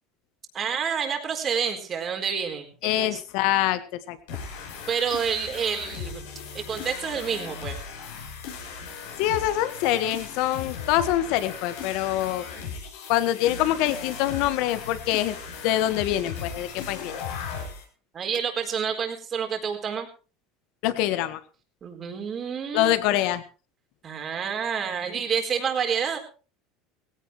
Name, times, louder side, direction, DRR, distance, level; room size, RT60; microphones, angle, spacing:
voice 1, 0.5-3.2 4.9-6.2 6.5-7.8 18.1-20.1 21.8-22.9 24.0-26.2, right 7 dB, 35° right, 5 dB, 4.2 m, -28 dB
voice 2, 2.8-4.4 9.2-12.5 13.1-15.3 15.6-17.2 20.8-21.4 22.7-23.4, left 13 dB, 70° left, 12 dB, 1.5 m, -25 dB
sound 1, 4.3-17.8, left 6 dB, 85° left, 6.4 m, -37 dB
17.5 x 16.5 x 3.2 m, 0.36 s
supercardioid pair, 105°, 0 cm